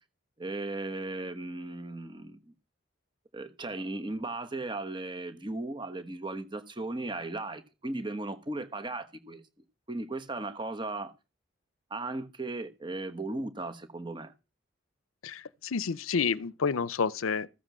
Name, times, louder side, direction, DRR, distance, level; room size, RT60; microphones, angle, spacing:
voice 1, 0.4-2.4 3.3-9.4 9.9-11.1 11.9-14.3, right 2 dB, 20° right, 1.2 m, -36 dB
voice 2, 15.2-17.5, left 5 dB, 80° left, 0.6 m, -29 dB
14.5 x 7.6 x 6.2 m
head